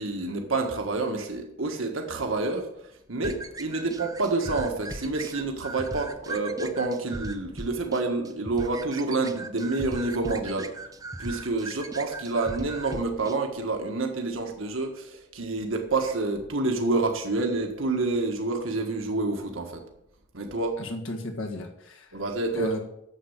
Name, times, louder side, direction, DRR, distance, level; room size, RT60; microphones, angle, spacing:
voice 1, 0.0-2.7 3.1-10.7 11.2-19.8 20.3-20.8 22.1-22.8, right 3 dB, 80° right, 3 dB, 1.6 m, -28 dB
sound 1, 3.2-13.4, right 2 dB, 15° right, 0.7 m, -39 dB
voice 2, 20.8-22.1 22.5-22.8, left 2 dB, 75° left, 2 dB, 1.6 m, -34 dB
10.0 x 7.3 x 7.2 m, 0.80 s
head